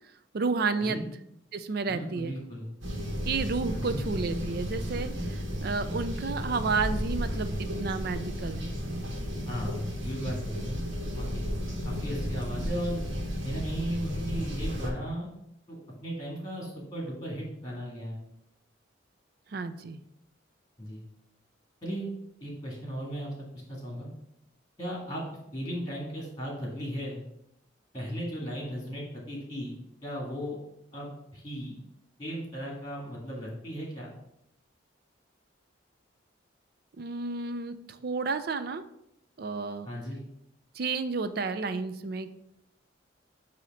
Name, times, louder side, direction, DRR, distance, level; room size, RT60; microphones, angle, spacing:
voice 1, 0.3-1.0 1.5-2.3 3.3-8.7 19.5-20.0 37.0-38.8 39.4-39.9 40.7-42.3, right 4 dB, 50° right, 11 dB, 0.4 m, -31 dB
voice 2, 1.9-2.7 3.7-4.0 9.5-10.8 11.1-11.5 11.8-13.0 13.4-15.3 15.7-18.2 20.8-21.0 21.8-22.1 22.4-24.1 24.8-25.2 25.5-27.2 27.9-29.7 30.0-30.6 30.9-31.8 32.2-34.1 39.9-40.2, equal, 20° left, -3 dB, 1.9 m, -36 dB
sound 1, 2.8-14.9, equal, 75° right, 1.4 m, -33 dB
8.2 x 2.8 x 4.1 m, 0.78 s
head